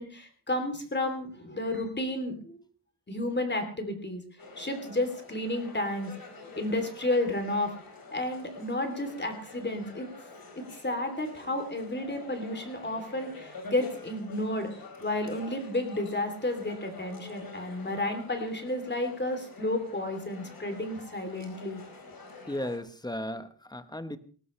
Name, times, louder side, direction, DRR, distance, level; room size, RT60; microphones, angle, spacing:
voice 1, 0.0-2.6 3.1-4.2 4.6-6.1 6.6-7.7 8.1-10.1 10.5-14.7 15.0-21.8, left 1 dB, 25° left, 6 dB, 3.1 m, -32 dB
sound 1, 4.4-22.8, left 3 dB, 55° left, 4.8 m, -48 dB
voice 2, 22.5-24.2, left 1 dB, 10° left, 11 dB, 1.1 m, -35 dB
19.0 x 19.0 x 3.3 m, 0.42 s
wide cardioid pair, 150°, 42 cm